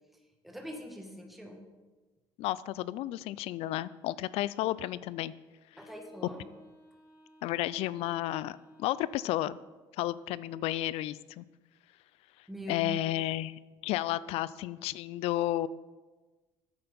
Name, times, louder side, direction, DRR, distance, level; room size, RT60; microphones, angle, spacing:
voice 1, 0.4-1.6 5.8-6.4 12.5-13.1, equal, ahead, 2 dB, 1.6 m, -43 dB
voice 2, 2.4-5.3 7.4-9.6 10.0-11.4 12.7-15.7, left 14 dB, 75° left, 18 dB, 0.4 m, -32 dB
Wind instrument woodwind instrument, 5.7-9.8, equal, 30° left, 2.7 m, -58 dB
8.7 x 7.8 x 5.3 m, 1.2 s
cardioid pair, 110°, 10 cm